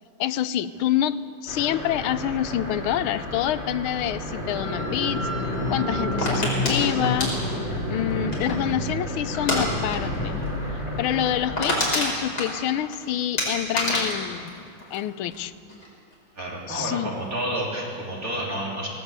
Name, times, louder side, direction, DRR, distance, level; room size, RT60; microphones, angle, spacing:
voice 1, 0.2-5.2 5.7-7.3 7.9-10.4 11.0-14.5 14.9-15.5 16.7-17.2, left 11 dB, 90° left, 14 dB, 1.5 m, -27 dB
sound 1, 1.5-11.6, left 1 dB, 30° left, 3.2 m, -30 dB
sound 2, 6.2-8.7 9.3-9.6 9.9-10.2 10.4-10.5 10.9-11.0 11.3-13.0 13.4-15.4 15.7-16.1, left 1 dB, 50° left, 5.2 m, -27 dB
voice 2, 16.4-18.9, right 1 dB, 40° right, -3 dB, 3.8 m, -30 dB
18.5 x 18.0 x 8.1 m, 2.3 s
omnidirectional pair, 2.2 m